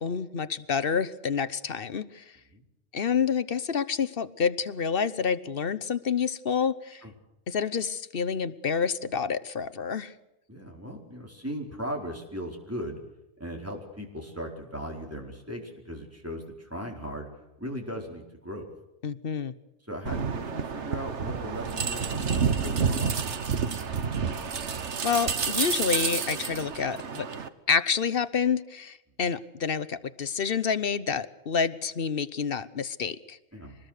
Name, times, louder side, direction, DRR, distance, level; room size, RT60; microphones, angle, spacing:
voice 1, 0.0-2.2 2.9-7.0 7.5-10.1 19.0-19.5 25.0-27.3 27.7-33.4, left 6 dB, 55° left, 14 dB, 1.1 m, -28 dB
voice 2, 10.5-13.0 13.4-17.3 17.6-18.7 19.9-23.2 33.5-33.8, equal, 10° right, 1 dB, 4.6 m, -37 dB
sound 1, 20.1-27.5, right 6 dB, 75° right, 1.5 m, -29 dB
24.5 x 20.5 x 6.6 m, 0.95 s
omnidirectional pair, 1.2 m